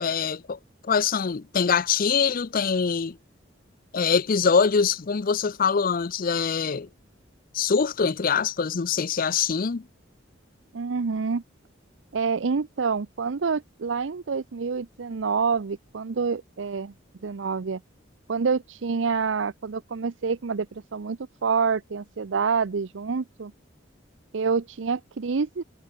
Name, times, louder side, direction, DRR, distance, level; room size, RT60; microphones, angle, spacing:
voice 1, 0.0-3.2 3.9-6.9 7.5-9.8, left 6 dB, 45° left, 0.5 m, -24 dB
voice 2, 10.7-11.4 12.1-16.9 17.2-17.8 18.3-23.5 24.3-25.6, right 5 dB, 75° right, 0.6 m, -27 dB
head